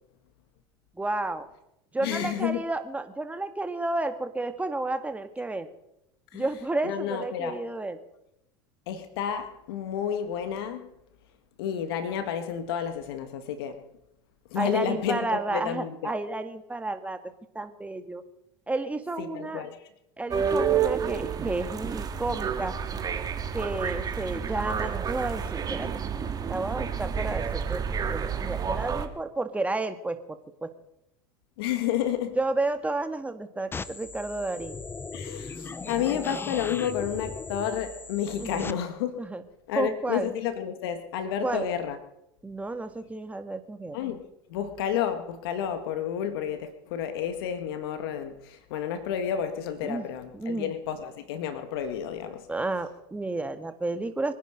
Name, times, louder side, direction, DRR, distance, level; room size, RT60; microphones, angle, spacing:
voice 1, 1.0-1.5 1.9-5.7 6.3-8.0 14.5-17.2 17.5-18.2 18.7-19.6 20.2-22.8 23.5-25.9 26.5-30.7 32.4-34.8 38.4-38.8 39.2-39.4 39.7-40.3 41.4-41.7 42.4-44.0 49.8-50.1 50.3-50.7 52.5-54.3, right 2 dB, 10° right, 8 dB, 1.9 m, -31 dB
voice 2, 2.0-2.6 6.3-6.4 6.8-7.6 8.9-10.8 11.6-13.8 14.5-16.1 19.2-19.8 31.6-32.4 35.1-39.2 39.7-42.0 43.9-52.5, left 9 dB, 70° left, 9 dB, 1.9 m, -31 dB
sound 1, 20.3-29.1, right 7 dB, 30° right, 2.0 m, -29 dB
sound 2, 33.7-38.7, left 4 dB, 15° left, 0.7 m, -38 dB
25.0 x 10.5 x 5.1 m, 0.83 s
hypercardioid pair, 90°, 13 cm